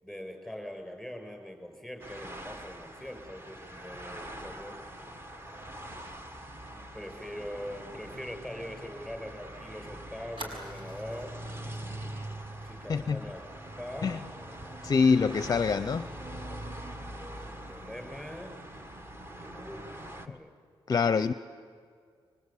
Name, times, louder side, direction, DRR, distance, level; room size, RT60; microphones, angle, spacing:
voice 1, 0.0-5.3 6.9-11.3 12.6-14.1 17.3-18.5 19.3-20.5, left 1 dB, 5° right, 5.7 m, -43 dB
sound 1, 2.0-20.3, right 1 dB, 25° right, 1.6 m, -43 dB
Fire, 6.1-9.5 9.8-9.9 10.4-11.3 11.7-11.9 12.2-12.5, right 1 dB, 60° right, 5.7 m, -48 dB
voice 2, 14.8-16.1 20.9-21.3, left 5 dB, 40° left, 0.6 m, -25 dB
26.0 x 24.0 x 8.5 m
cardioid pair, 100°, 10 cm